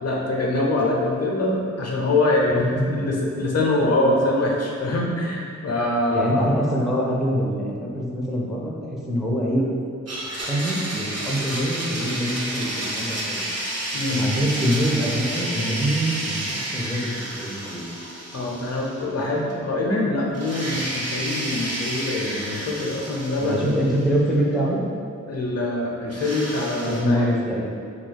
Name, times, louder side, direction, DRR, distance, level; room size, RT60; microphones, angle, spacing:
voice 1, 0.0-6.5 13.9-14.3 18.3-23.8 25.3-27.3, left 2 dB, 55° left, -2 dB, 0.6 m, -24 dB
voice 2, 2.5-3.0 6.1-9.6 10.5-13.5 14.1-17.9 23.4-24.8 26.9-27.6, equal, ahead, -4 dB, 0.5 m, -24 dB
Domestic sounds home sounds, 10.1-19.2 19.5-19.6 20.3-24.3 26.1-27.0, right 1 dB, 55° right, 0.8 m, -31 dB
2.6 x 2.3 x 4.0 m, 2.2 s
wide cardioid pair, 85°, 30 cm